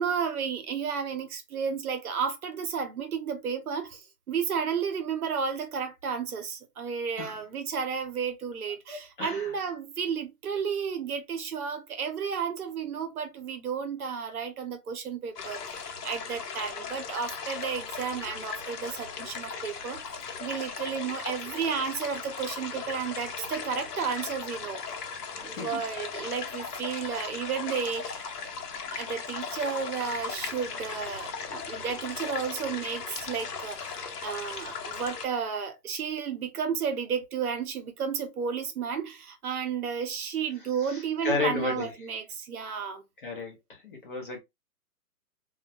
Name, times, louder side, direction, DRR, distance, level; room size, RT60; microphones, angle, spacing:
voice 1, 0.0-20.0 20.4-25.0 25.4-28.3 28.9-43.0, right 6 dB, 65° right, 0.8 m, -32 dB
voice 2, 8.9-9.5 25.4-25.8 40.8-41.9 43.2-44.4, left 3 dB, 35° left, 0.6 m, -33 dB
sound 1, 15.4-35.3, left 5 dB, 80° left, 0.8 m, -38 dB
2.3 x 2.1 x 2.6 m
hypercardioid pair, 165°, 46 cm